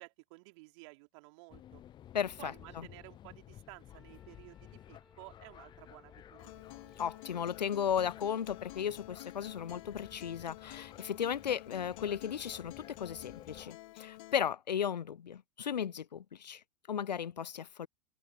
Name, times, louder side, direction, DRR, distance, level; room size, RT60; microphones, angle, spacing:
voice 1, 0.0-1.8 2.4-6.6, right 27 dB, 50° right, 3.7 m, -54 dB
sound 1, 1.5-13.7, left 11 dB, 20° left, 0.6 m, -55 dB
voice 2, 2.1-2.5 7.0-16.6 16.9-17.9, left 8 dB, 80° left, 0.4 m, -35 dB
Wind instrument woodwind instrument, 3.8-7.6, left 1 dB, 5° left, 5.5 m, -64 dB
Acoustic guitar, 6.4-14.4, left 18 dB, 55° left, 2.6 m, -50 dB
figure-of-eight pair, 95°, 21 cm